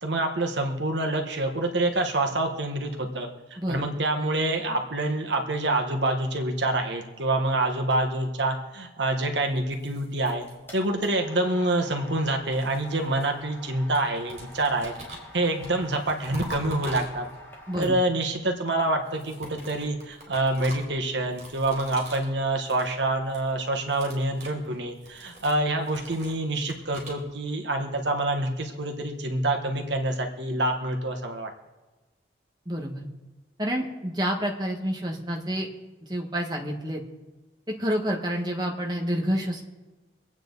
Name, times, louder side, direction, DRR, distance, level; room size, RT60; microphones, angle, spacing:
voice 1, 0.0-3.3 3.7-10.5 10.7-14.9 15.3-17.3 17.8-31.5, right 2 dB, 70° right, 3 dB, 1.6 m, -26 dB
voice 2, 3.6-3.9 17.7-17.9 32.6-33.0 33.6-35.7 36.1-37.0 37.7-39.6, equal, 20° right, 0 dB, 1.6 m, -28 dB
sound 1, 9.5-11.1 12.1-13.7 13.9-17.6 19.0-22.3 22.6-22.9 23.2-23.5 23.8-27.2, equal, 40° right, 4.4 m, -44 dB
sound 2, 10.7-18.2, left 1 dB, 10° left, 2.0 m, -47 dB
25.0 x 9.0 x 4.1 m, 1.1 s
head